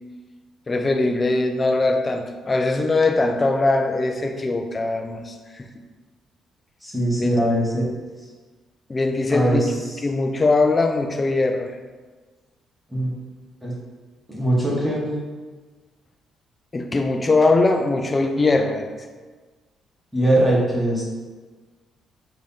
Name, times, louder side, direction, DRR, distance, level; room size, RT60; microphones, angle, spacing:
voice 1, 0.7-5.7 7.2-7.5 8.9-9.7 10.0-11.7 16.7-18.9, left 3 dB, 30° left, 5 dB, 0.4 m, -21 dB
voice 2, 6.8-7.8 9.3-10.0 12.9-13.1 13.6-13.7 14.3-15.1 20.1-21.0, right 1 dB, 5° right, -6 dB, 1.1 m, -21 dB
3.3 x 2.7 x 3.7 m, 1.4 s
cardioid pair, 90°, 0 cm